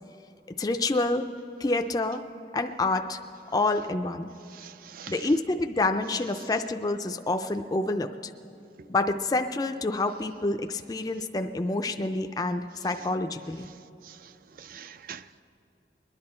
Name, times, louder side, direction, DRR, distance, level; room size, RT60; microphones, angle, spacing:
voice 1, 0.6-1.3 1.6-2.2 2.5-3.2 3.5-4.3 5.1-8.1 8.9-13.7, left 2 dB, 20° left, 6 dB, 0.3 m, -27 dB
voice 2, 4.6-5.1 14.7-15.4, right 8 dB, 50° right, 13 dB, 0.3 m, -44 dB
21.5 x 10.5 x 4.3 m, 2.7 s
head